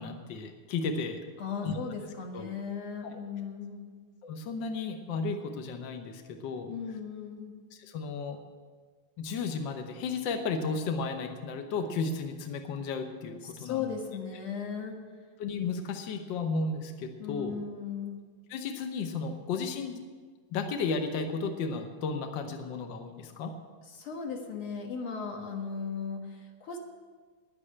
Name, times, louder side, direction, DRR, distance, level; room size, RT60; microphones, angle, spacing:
voice 1, 0.0-1.2 1.6-1.8 2.3-2.5 4.2-6.7 7.7-8.4 9.2-13.9 15.4-17.5 18.5-20.0 20.5-23.5, left 4 dB, 70° left, 5 dB, 1.1 m, -34 dB
voice 2, 1.4-3.9 6.7-7.6 13.4-15.0 17.2-18.2 23.9-26.8, left 6 dB, 50° left, 2 dB, 2.2 m, -37 dB
10.5 x 9.9 x 8.7 m, 1.5 s
omnidirectional pair, 3.3 m